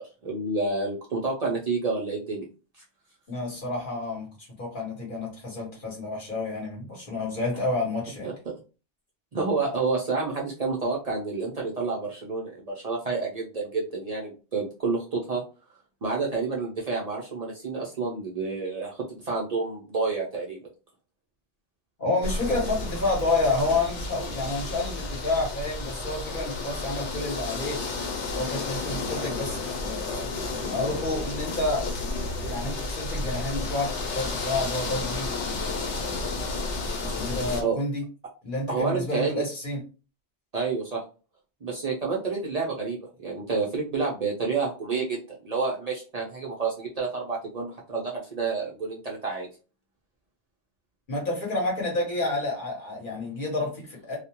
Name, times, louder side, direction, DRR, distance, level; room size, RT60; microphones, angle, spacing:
voice 1, 0.0-2.5 8.2-8.3 9.3-15.4 16.0-20.6 37.6-37.8 38.7-39.4 40.5-41.0 41.6-49.5, right 4 dB, 55° right, -2 dB, 0.4 m, -29 dB
voice 2, 3.3-4.3 4.6-8.3 22.0-27.8 28.3-30.3 30.6-31.9 32.4-36.3 37.0-38.0 38.4-39.8 51.1-54.2, left 2 dB, 50° left, -2 dB, 1.0 m, -29 dB
sound 1, 22.2-37.6, left 3 dB, 80° left, 1.0 m, -32 dB
2.3 x 2.1 x 2.8 m, 0.33 s
omnidirectional pair, 1.2 m